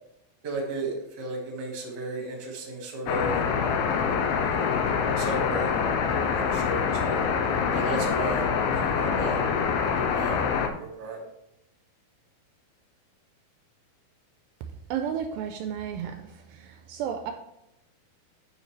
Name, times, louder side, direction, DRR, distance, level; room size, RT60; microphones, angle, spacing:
voice 1, 0.4-3.4 4.4-4.8 5.2-5.7 6.0-7.2 7.7-8.4 8.7-9.4 10.0-10.4 10.7-11.2, right 2 dB, 40° right, 0 dB, 1.7 m, -34 dB
sound 1, 3.1-10.7, left 6 dB, 85° left, 2.5 m, -25 dB
voice 2, 14.9-16.2 16.5-17.3, right 8 dB, 80° right, 6 dB, 2.2 m, -32 dB
9.3 x 6.5 x 3.2 m, 0.84 s
omnidirectional pair, 4.3 m